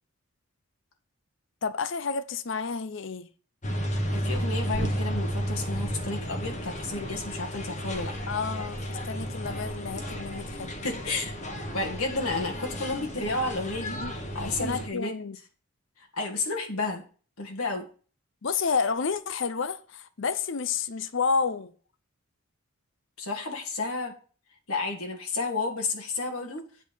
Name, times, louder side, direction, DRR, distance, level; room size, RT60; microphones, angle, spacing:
voice 1, 1.6-3.3 8.3-10.7 13.9-14.1 14.4-15.4 18.4-21.7, left 5 dB, 60° left, 0.6 m, -30 dB
sound 1, 3.6-14.9, equal, 35° left, 1.3 m, -33 dB
voice 2, 4.1-8.1 10.8-11.3 11.7-14.0 14.3-15.1 16.0-17.0 17.4-17.9 23.2-24.1 24.7-26.6, left 3 dB, 85° left, 1.7 m, -31 dB
8.3 x 4.3 x 6.8 m
head